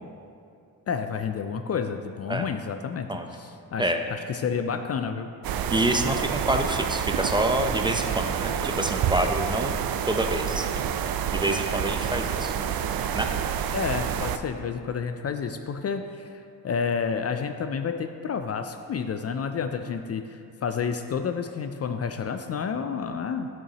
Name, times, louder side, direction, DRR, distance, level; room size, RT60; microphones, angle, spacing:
voice 1, 0.9-5.3 13.7-16.3 16.6-23.5, left 6 dB, 40° left, 7 dB, 0.4 m, -30 dB
sound 1, 5.4-14.4, right 8 dB, 70° right, 0.5 m, -28 dB
voice 2, 5.7-9.7 10.1-10.7 11.3-12.5 13.1-13.3, right 1 dB, 10° right, 5 dB, 0.7 m, -27 dB
9.3 x 7.0 x 2.9 m, 2.5 s
cardioid pair, 65°, 37 cm